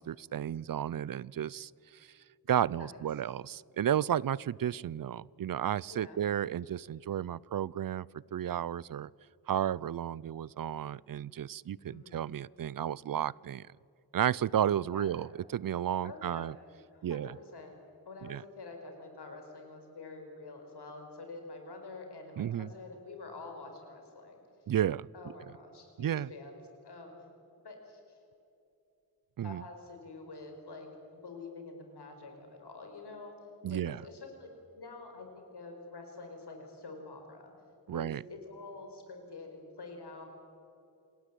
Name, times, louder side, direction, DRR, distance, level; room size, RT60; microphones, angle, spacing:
voice 1, 0.0-2.1 2.5-8.1 8.3-9.1 9.5-13.7 14.1-16.5 17.0-17.4 18.2-18.4 22.4-22.7 24.7-25.1 26.0-26.3 29.4-29.6 33.6-34.0 37.9-38.2, right 10 dB, 60° right, 24 dB, 0.5 m, -32 dB
voice 2, 5.9-6.2 11.9-12.3 14.8-15.2 16.0-16.5 16.9-17.7 18.0-24.4 25.1-27.3 27.6-28.2 29.4-30.9 31.2-33.3 33.7-34.5 34.7-37.5 37.9-40.3, left 3 dB, 85° left, 3 dB, 5.1 m, -47 dB
27.5 x 19.0 x 8.3 m, 2.7 s
wide cardioid pair, 120°, 39 cm